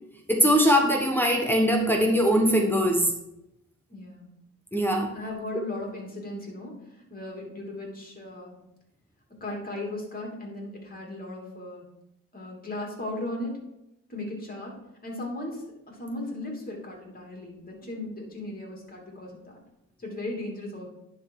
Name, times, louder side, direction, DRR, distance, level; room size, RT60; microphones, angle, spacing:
voice 1, 0.3-3.1 4.7-5.1, equal, 5° left, 2 dB, 1.1 m, -21 dB
voice 2, 3.9-4.3 5.1-6.7 7.1-8.6 9.4-11.8 12.3-13.6 14.1-14.8 15.0-19.6 20.0-20.9, left 1 dB, 30° left, -1 dB, 2.9 m, -36 dB
10.5 x 4.1 x 4.7 m, 0.86 s
cardioid pair, 90°, 30 cm